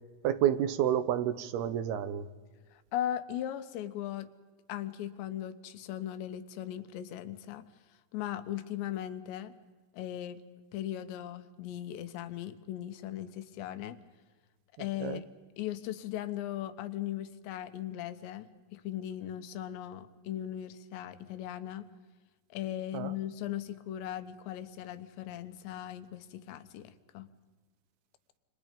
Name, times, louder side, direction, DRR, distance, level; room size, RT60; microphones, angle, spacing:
voice 1, 0.2-2.3 15.0-15.2 22.9-23.1, right 10 dB, 70° right, 12 dB, 2.8 m, -29 dB
voice 2, 2.7-4.3 4.7-7.6 8.1-9.5 9.9-10.4 10.7-14.0 14.8-15.2 15.6-21.9 22.5-27.3, left 11 dB, 75° left, 11 dB, 3.3 m, -38 dB
29.0 x 27.5 x 5.3 m, 1.3 s
omnidirectional pair, 5.2 m